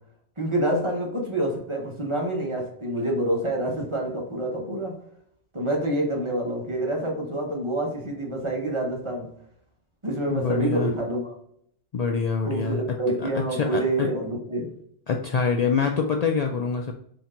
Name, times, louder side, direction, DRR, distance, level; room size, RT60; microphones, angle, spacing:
voice 1, 0.4-5.0 5.5-9.3 10.0-11.3 12.5-14.7, right 1 dB, 25° right, -1 dB, 1.1 m, -27 dB
voice 2, 10.3-10.9 11.9-12.8 13.2-14.1 15.1-16.9, left 5 dB, 85° left, 3 dB, 0.3 m, -25 dB
4.4 x 2.9 x 3.7 m, 0.67 s
omnidirectional pair, 1.2 m